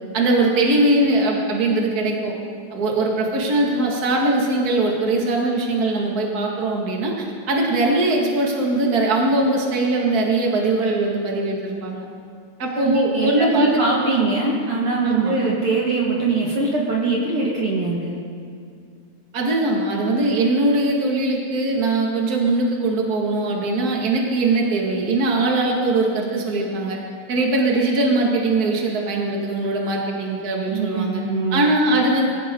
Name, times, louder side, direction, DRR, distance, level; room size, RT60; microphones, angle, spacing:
voice 1, 0.1-2.3 2.7-12.1 12.6-13.8 15.0-15.3 19.3-27.0 27.3-31.2 31.5-32.3, right 2 dB, 35° right, -1 dB, 2.4 m, -21 dB
voice 2, 12.8-18.2 30.7-31.6, right 3 dB, 50° right, -3 dB, 2.5 m, -22 dB
23.5 x 15.5 x 3.9 m, 2.3 s
omnidirectional pair, 3.3 m